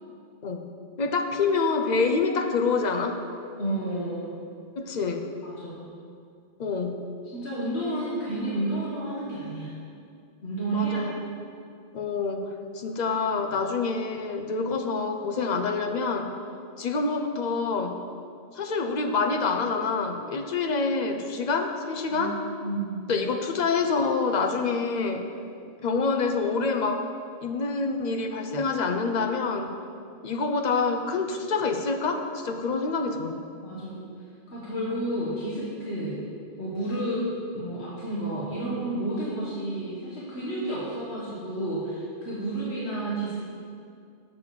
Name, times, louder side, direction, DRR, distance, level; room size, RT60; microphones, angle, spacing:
voice 1, 1.0-3.2 4.8-5.3 6.6-7.0 10.7-11.3 11.9-16.3 16.8-18.0 18.5-22.4 23.1-25.3 25.8-27.1 27.4-29.7 30.2-33.4, left 4 dB, 50° left, 5 dB, 0.6 m, -27 dB
voice 2, 3.6-4.3 5.4-5.9 7.3-9.7 10.4-11.1 22.1-22.3 22.6-23.1 33.6-34.0 34.5-36.2 36.6-43.4, right 1 dB, 75° left, -7 dB, 1.6 m, -31 dB
7.2 x 6.7 x 4.8 m, 2.3 s
omnidirectional pair, 1.1 m